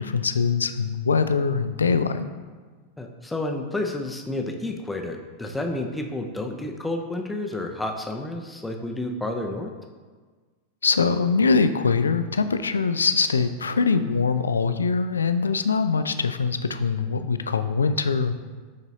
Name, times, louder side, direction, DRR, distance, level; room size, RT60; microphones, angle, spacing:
voice 1, 0.0-2.3 10.8-18.3, left 5 dB, 75° left, 10 dB, 0.3 m, -23 dB
voice 2, 3.0-9.7, left 2 dB, 5° left, 3 dB, 0.6 m, -30 dB
10.0 x 4.0 x 2.7 m, 1.5 s
figure-of-eight pair, 90°, 0 cm